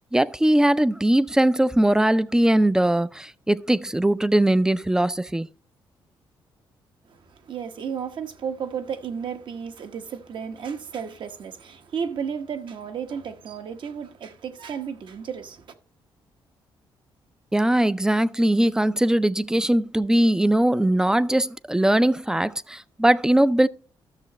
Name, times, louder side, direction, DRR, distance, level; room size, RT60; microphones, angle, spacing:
voice 1, 0.0-5.5 17.5-23.7, right 1 dB, 5° right, 0.4 m, -20 dB
voice 2, 7.1-15.7, right 7 dB, 65° right, 1.1 m, -33 dB
13.0 x 6.6 x 3.0 m
cardioid pair, 100°, 9 cm